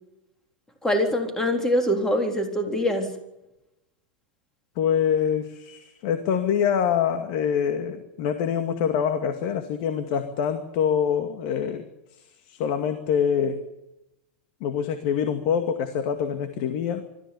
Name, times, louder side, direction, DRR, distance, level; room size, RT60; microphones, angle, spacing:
voice 1, 0.8-3.1, equal, 10° left, 5 dB, 3.7 m, -24 dB
voice 2, 4.8-11.9 12.1-13.6 14.6-17.0, left 8 dB, 55° left, 8 dB, 2.2 m, -25 dB
25.0 x 14.0 x 9.7 m, 0.94 s
supercardioid pair, 130°, 5 cm